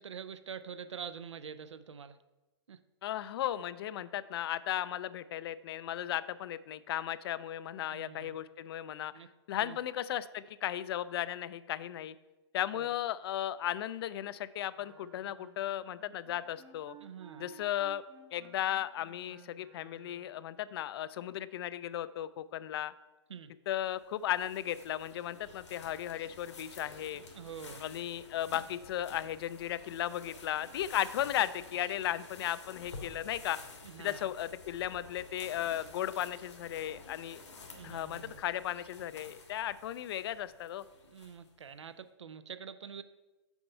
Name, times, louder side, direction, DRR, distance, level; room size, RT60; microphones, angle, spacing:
voice 1, 0.0-2.2 2.7-2.8 7.9-8.3 9.1-9.3 9.6-9.8 12.7-12.9 17.0-17.5 23.3-23.5 27.3-27.8 33.8-34.3 37.7-38.3 41.1-43.0, right 7 dB, 85° right, 13 dB, 0.5 m, -46 dB
voice 2, 3.0-9.1 9.5-12.1 12.5-17.0 17.4-18.0 18.3-22.9 23.7-27.2 27.8-33.6 34.0-37.4 37.8-40.8, left 12 dB, 60° left, 16 dB, 0.4 m, -35 dB
Wind instrument woodwind instrument, 14.7-20.5, right 8 dB, 60° right, 1.2 m, -57 dB
sound 1, 23.9-41.6, left 3 dB, 85° left, 1.5 m, -51 dB
7.1 x 4.4 x 5.5 m, 1.1 s
hypercardioid pair, 115°, 15 cm